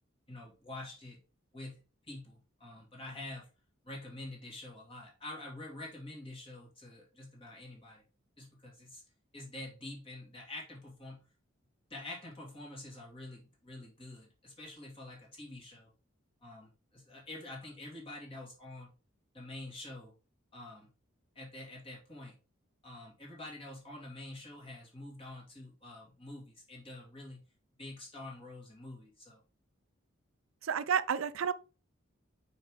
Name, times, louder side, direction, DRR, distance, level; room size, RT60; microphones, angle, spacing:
voice 1, 0.3-1.2 1.5-1.8 2.0-3.5 3.8-8.0 8.4-9.0 9.3-11.2 11.9-15.9 16.4-18.9 19.3-20.1 20.5-20.9 21.3-22.4 22.8-27.4 27.8-29.4, left 2 dB, 25° left, 2.6 m, -47 dB
voice 2, 30.6-31.5, right 7 dB, 85° right, 0.5 m, -30 dB
6.3 x 4.8 x 3.7 m
head